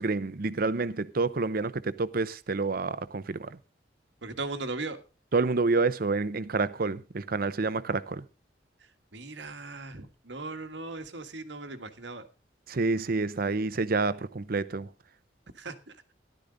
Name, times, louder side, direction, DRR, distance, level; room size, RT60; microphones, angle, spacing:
voice 1, 0.0-3.6 5.3-8.2 12.7-14.9, right 3 dB, 55° right, 0.7 m, -28 dB
voice 2, 4.2-5.0 9.1-12.3 15.5-16.0, right 3 dB, 85° right, 1.6 m, -38 dB
13.5 x 11.5 x 3.9 m
head